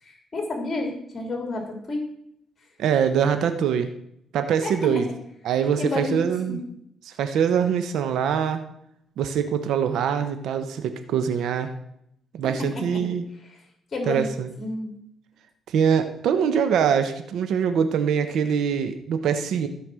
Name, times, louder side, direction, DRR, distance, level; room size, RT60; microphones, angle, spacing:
voice 1, 0.0-2.1 4.6-5.0 5.8-6.2 6.5-6.6 12.4-12.8 13.9-14.3 14.6-14.9, left 2 dB, 35° left, 3 dB, 3.0 m, -30 dB
voice 2, 2.8-3.9 4.3-5.1 5.4-6.6 7.0-8.6 9.2-11.7 12.3-13.2 14.1-14.5 15.7-19.7, right 7 dB, 75° right, 8 dB, 1.0 m, -23 dB
15.0 x 5.2 x 6.3 m, 0.75 s
cardioid pair, 90°, 0 cm